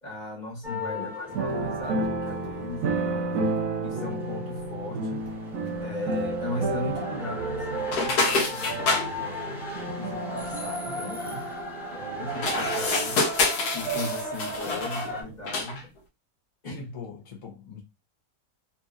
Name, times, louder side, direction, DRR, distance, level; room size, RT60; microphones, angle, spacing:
voice 1, 0.0-3.4 3.8-5.2 5.8-11.4 11.9-13.2 13.7-15.8 16.6-16.9, left 2 dB, 30° left, 1.2 m, -37 dB
sound 1, 0.6-15.2, left 2 dB, ahead, 0.6 m, -37 dB
voice 2, 0.7-1.1 10.9-11.3 14.7-15.0 16.6-17.8, left 6 dB, 60° left, 0.3 m, -41 dB
sound 2, 1.3-15.0 15.3-15.4, right 3 dB, 70° right, 1.0 m, -32 dB
sound 3, 7.9-9.1 12.3-15.1 15.4-15.8, left 3 dB, 85° left, 1.3 m, -27 dB
2.9 x 2.7 x 2.4 m
omnidirectional pair, 1.6 m